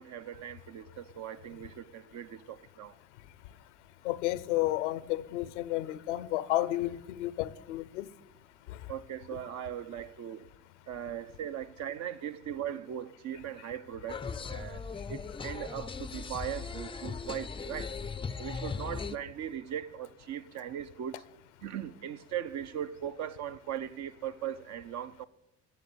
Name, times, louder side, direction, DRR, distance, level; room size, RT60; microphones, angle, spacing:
voice 1, 0.0-3.0 8.9-10.5 10.9-17.9 18.4-21.2 21.6-25.3, right 10 dB, 50° right, 0.8 m, -39 dB
voice 2, 4.0-8.1 8.7-8.8, left 16 dB, 80° left, 0.7 m, -32 dB
sound 1, 14.1-19.2, left 5 dB, 15° left, 0.5 m, -38 dB
14.0 x 8.1 x 8.3 m
hypercardioid pair, 65°, 35 cm